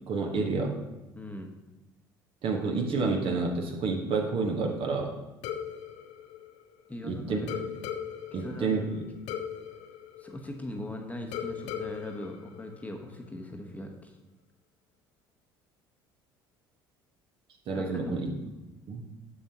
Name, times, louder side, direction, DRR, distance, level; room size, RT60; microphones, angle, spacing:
voice 1, 0.1-0.8 2.4-5.1 7.1-7.4 8.3-8.9 17.7-18.3 18.9-19.0, right 4 dB, 50° right, 2 dB, 1.2 m, -29 dB
voice 2, 1.1-1.5 6.9-7.6 8.3-8.8 10.2-14.2 17.7-18.2, left 1 dB, 10° left, 3 dB, 1.0 m, -40 dB
sound 1, 5.4-7.0 7.5-10.9 11.3-13.3, left 9 dB, 60° left, 0.6 m, -39 dB
7.0 x 6.8 x 2.9 m, 1.0 s
hypercardioid pair, 60°, 12 cm